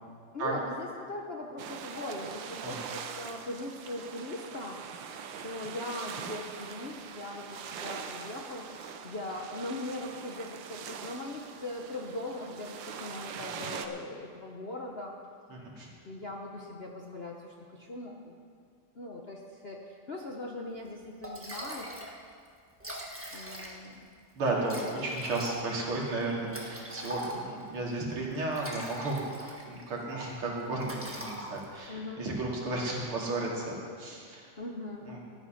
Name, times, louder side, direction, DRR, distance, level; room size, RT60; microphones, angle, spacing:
voice 1, 0.3-8.7 9.0-15.1 16.0-18.4 18.9-21.9 23.3-24.1 31.9-32.2 34.6-35.1, left 2 dB, 50° left, -1 dB, 0.7 m, -40 dB
sound 1, 1.6-13.9, right 7 dB, 65° right, 1.4 m, -42 dB
voice 2, 15.5-15.9 24.3-34.5 35.0-35.2, right 2 dB, 85° right, -4 dB, 3.4 m, -34 dB
Liquid, 20.9-21.0 21.2-22.2 22.4-22.5 22.7-24.0 24.7-27.7 28.3-29.9 30.2-30.4 30.8-31.9, right 1 dB, 10° right, 1.1 m, -41 dB
14.0 x 10.0 x 5.8 m, 2.2 s
omnidirectional pair, 2.3 m